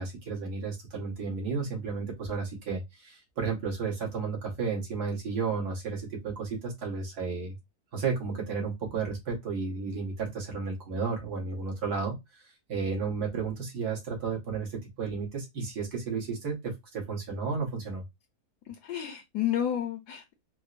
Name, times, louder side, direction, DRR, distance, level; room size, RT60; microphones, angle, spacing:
voice 1, 0.0-7.6 7.9-18.0, right 5 dB, 75° right, 1.9 m, -33 dB
voice 2, 18.6-20.3, left 10 dB, 80° left, 1.2 m, -31 dB
4.6 x 2.1 x 2.4 m
omnidirectional pair, 1.7 m